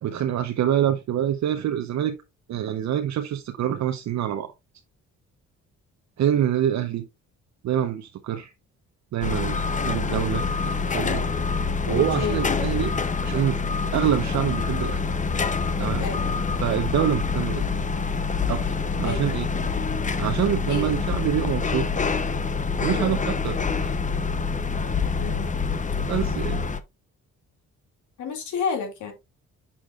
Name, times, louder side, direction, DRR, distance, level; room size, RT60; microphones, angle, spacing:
voice 1, 0.0-2.2 2.5-4.5 6.2-7.0 7.6-8.5 9.1-9.6 9.8-11.2 11.9-12.9 13.2-13.6 13.9-15.0 15.8-16.0 16.6-17.6 18.5-18.7 19.0-19.5 20.2-21.9 22.8-23.9 26.1-26.6, right 10 dB, 65° right, 0.8 m, -26 dB
sound 1, 9.2-26.8, left 5 dB, 25° left, 0.7 m, -26 dB
voice 2, 11.9-12.7 16.0-16.3 19.0-19.2 20.7-20.9 22.8-23.1 25.2-25.6 28.2-29.1, left 5 dB, 75° left, 2.4 m, -30 dB
7.2 x 6.2 x 2.4 m
cardioid pair, 90°, 30 cm